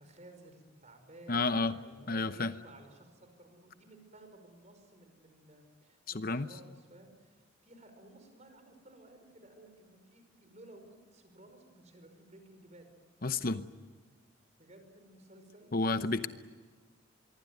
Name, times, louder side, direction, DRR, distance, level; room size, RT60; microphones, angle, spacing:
voice 1, 0.0-12.9 14.6-16.3, right 1 dB, 35° right, 7 dB, 5.3 m, -56 dB
voice 2, 1.3-1.7 2.1-2.5 6.1-6.5 13.2-13.7 15.7-16.3, left 3 dB, 45° left, 11 dB, 0.9 m, -30 dB
25.5 x 23.0 x 9.4 m, 1.5 s
head